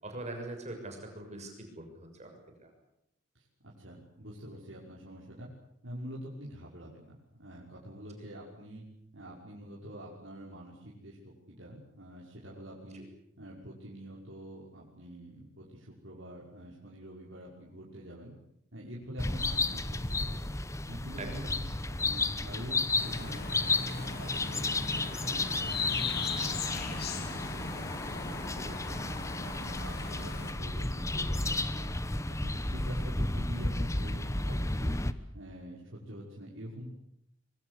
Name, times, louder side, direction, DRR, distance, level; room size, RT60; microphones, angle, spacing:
voice 1, 0.0-2.7 12.9-13.1 21.2-21.5 30.1-30.2, right 2 dB, 35° right, 4 dB, 6.9 m, -43 dB
voice 2, 3.3-5.5 5.8-8.8 9.1-13.0 13.4-18.3 18.7-20.5 20.9-25.8 26.1-29.1 29.4-31.9 32.2-35.0 35.3-36.9, equal, 65° right, -5 dB, 5.9 m, -46 dB
sound 1, 19.2-35.1, left 2 dB, 15° left, 1.1 m, -33 dB
sound 2, 23.0-30.5, left 5 dB, 50° left, 3.4 m, -39 dB
25.0 x 24.0 x 8.4 m, 0.78 s
head